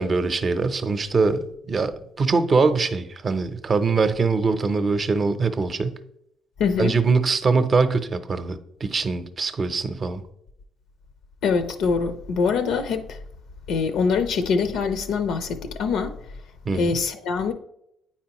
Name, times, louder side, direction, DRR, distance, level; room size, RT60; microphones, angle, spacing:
voice 1, 0.0-6.0 6.8-10.2 16.7-17.0, right 4 dB, 40° right, 0.6 m, -23 dB
voice 2, 6.6-6.9 11.4-13.2 13.7-16.2 16.7-17.5, left 5 dB, 75° left, 0.4 m, -24 dB
8.7 x 4.3 x 2.9 m
supercardioid pair, 75°, 0 cm